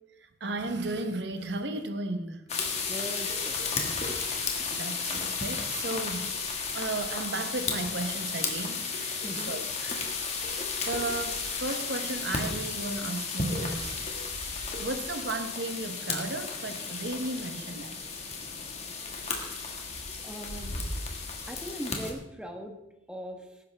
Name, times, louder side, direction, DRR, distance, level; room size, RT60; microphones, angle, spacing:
voice 1, 0.4-2.4 4.6-6.3 6.7-14.0 14.8-18.0 18.5-18.6, right 2 dB, 60° right, 8 dB, 1.0 m, -35 dB
sound 1, 2.5-22.1, left 4 dB, 35° left, 1.7 m, -33 dB
voice 2, 2.8-3.8 9.2-9.5 20.2-20.7 21.5-22.8 23.1-23.6, equal, 5° right, 2 dB, 1.2 m, -40 dB
18.0 x 10.0 x 3.4 m, 0.95 s
head